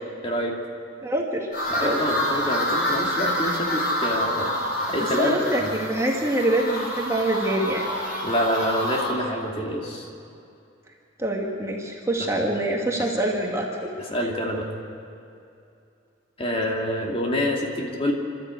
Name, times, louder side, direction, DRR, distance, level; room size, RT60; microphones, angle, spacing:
voice 1, 1.0-1.5 1.8-2.0 5.2-7.9 11.2-13.9, right 1 dB, 15° right, -1 dB, 2.0 m, -25 dB
sound 1, 1.5-9.1, equal, 50° left, 5.4 m, -27 dB
voice 2, 1.7-4.5 4.9-5.7 8.2-10.1 12.2-12.4 14.0-14.7 16.4-18.1, left 1 dB, 30° left, 0 dB, 2.5 m, -26 dB
27.5 x 13.0 x 8.3 m, 2.6 s
head